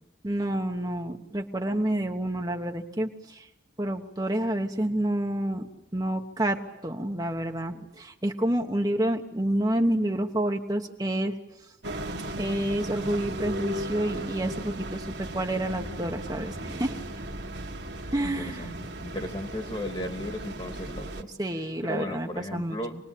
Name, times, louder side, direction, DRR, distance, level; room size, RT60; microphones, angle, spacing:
voice 1, 0.2-3.5 3.8-11.3 12.4-17.0 18.1-18.7 21.4-22.8, right 1 dB, 20° right, 3 dB, 1.2 m, -29 dB
sound 1, 11.8-21.2, right 1 dB, 65° right, 2.1 m, -36 dB
voice 2, 18.2-21.3 21.8-23.0, left 1 dB, 25° left, 6 dB, 2.0 m, -35 dB
27.5 x 20.0 x 8.5 m, 0.91 s
head